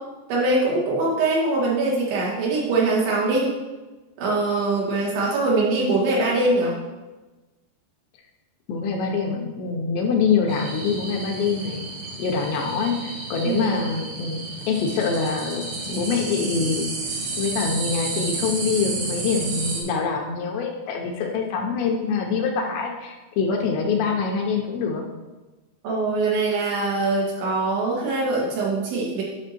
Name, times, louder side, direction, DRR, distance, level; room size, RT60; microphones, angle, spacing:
voice 1, 0.3-3.5 4.2-6.8 13.4-13.7 25.8-29.2, right 2 dB, 65° right, -5 dB, 3.8 m, -22 dB
voice 2, 8.7-11.9 12.2-14.4 14.7-16.9 17.4-25.0, left 5 dB, 85° left, 1 dB, 2.8 m, -25 dB
sound 1, 10.5-19.8, right 3 dB, 85° right, 4.0 m, -31 dB
11.0 x 5.9 x 3.0 m, 1.2 s
omnidirectional pair, 5.3 m